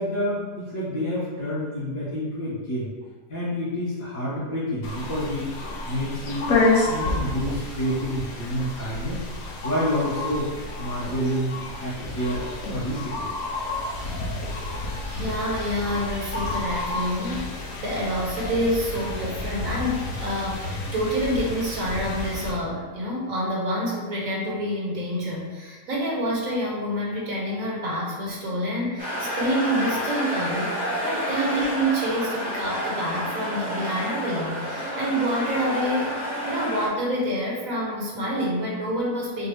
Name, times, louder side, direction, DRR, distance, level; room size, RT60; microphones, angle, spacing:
voice 1, 0.0-2.9 3.3-5.4 5.9-6.5 6.9-9.2 9.6-10.5 10.8-13.2, equal, 85° left, -11 dB, 2.3 m, -28 dB
sound 1, 4.8-22.5, left 2 dB, 60° left, 1.1 m, -30 dB
voice 2, 15.1-39.5, equal, 60° right, -4 dB, 1.4 m, -27 dB
sound 2, 29.0-36.9, equal, 30° left, 1.6 m, -29 dB
5.9 x 2.5 x 3.3 m, 1.3 s
omnidirectional pair, 1.7 m